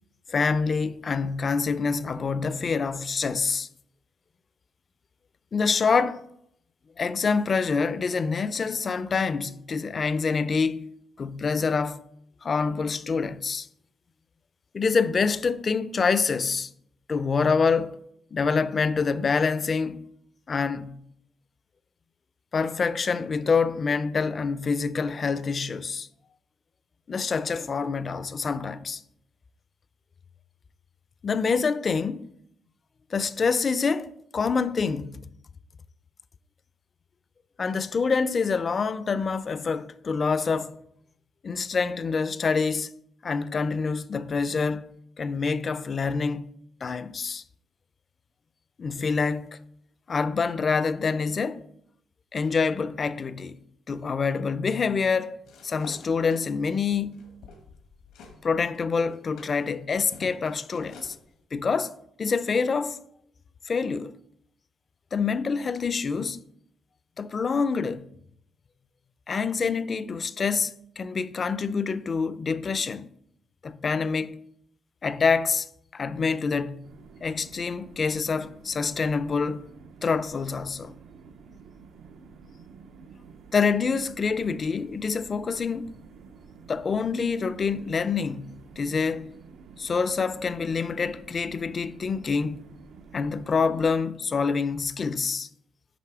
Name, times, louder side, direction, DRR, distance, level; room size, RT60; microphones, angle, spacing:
voice 1, 0.3-3.7 5.5-6.3 7.0-10.9 11.2-12.0 12.4-13.7 14.7-16.7 17.1-18.0 18.3-20.0 20.5-21.0 22.5-26.1 27.1-29.0 31.2-32.3 33.1-35.3 37.6-40.7 41.4-42.9 43.2-44.9 45.2-46.5 46.8-47.4 48.8-49.5 50.1-51.6 52.3-53.6 53.9-55.4 55.6-57.2 58.4-61.2 61.5-63.0 63.7-64.1 65.1-66.4 67.2-68.1 69.3-73.1 73.6-74.4 75.0-75.7 75.9-76.9 77.2-79.7 80.0-80.9 83.5-86.0 86.7-89.3 89.8-92.6 93.1-95.5, left 5 dB, 40° left, 0.4 m, -26 dB
sound 1, 55.4-58.4 58.7-61.2, left 3 dB, 90° left, 1.3 m, -47 dB
sound 2, 76.8-94.0, right 5 dB, 80° right, 0.5 m, -50 dB
9.2 x 3.3 x 4.6 m
cardioid pair, 90°, 0 cm